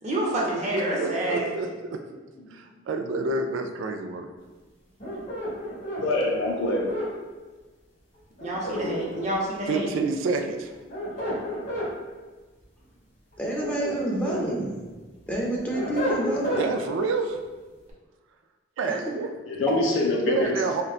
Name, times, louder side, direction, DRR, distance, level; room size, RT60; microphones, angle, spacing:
voice 1, 0.0-1.5 8.4-9.9, right 1 dB, 35° right, -3 dB, 0.6 m, -28 dB
voice 2, 0.7-2.0 2.5-4.3 9.7-10.7 16.6-17.4 18.8-19.3 20.3-20.8, right 3 dB, 80° right, 5 dB, 0.3 m, -28 dB
sound 1, 5.0-7.1 8.4-9.5 10.7-11.9 13.3-14.4 14.9-16.7, equal, 40° left, 1.1 m, -31 dB
voice 3, 6.0-7.0 8.6-9.0 19.5-20.5, left 2 dB, 75° left, 0 dB, 0.6 m, -25 dB
voice 4, 13.4-14.8 15.3-16.6 18.9-19.2 19.7-19.8, right 1 dB, 10° left, -4 dB, 0.5 m, -28 dB
3.8 x 2.2 x 2.4 m, 1.3 s
head